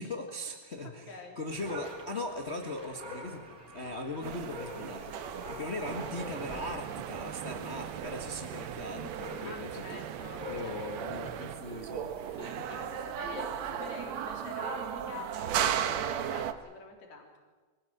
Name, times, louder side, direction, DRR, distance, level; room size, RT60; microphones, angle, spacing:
voice 1, 0.0-10.0 10.5-12.1 12.6-12.7, left 2 dB, 80° left, 3 dB, 0.6 m, -39 dB
voice 2, 0.8-1.4 9.4-10.8 11.4-12.0 12.2-17.3, left 4 dB, 50° left, 2 dB, 4.6 m, -47 dB
Dog, 1.5-15.2, left 1 dB, 25° right, 5.8 m, -46 dB
sound 1, 4.2-16.5, right 9 dB, 65° right, 1.8 m, -37 dB
sound 2, 5.8-11.6, right 11 dB, 85° right, 2.8 m, -42 dB
25.5 x 18.5 x 8.0 m, 1.4 s
omnidirectional pair, 4.3 m